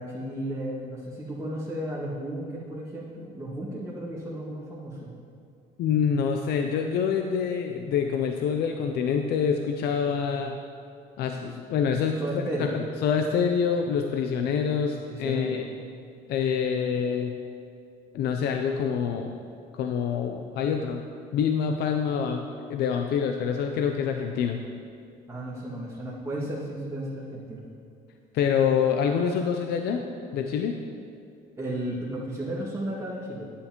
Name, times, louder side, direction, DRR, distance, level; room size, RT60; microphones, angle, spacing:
voice 1, 0.0-5.1 12.2-12.8 14.4-14.5 15.1-15.7 25.3-27.6 31.6-33.5, right 1 dB, 15° right, -10 dB, 2.2 m, -34 dB
voice 2, 5.8-10.6 11.2-12.2 12.7-15.7 16.3-17.4 18.1-19.3 19.7-21.0 21.3-24.6 28.3-30.0 30.3-30.8, left 7 dB, 70° left, 4 dB, 0.6 m, -26 dB
11.0 x 9.7 x 3.1 m, 2.4 s
supercardioid pair, 85°, 17 cm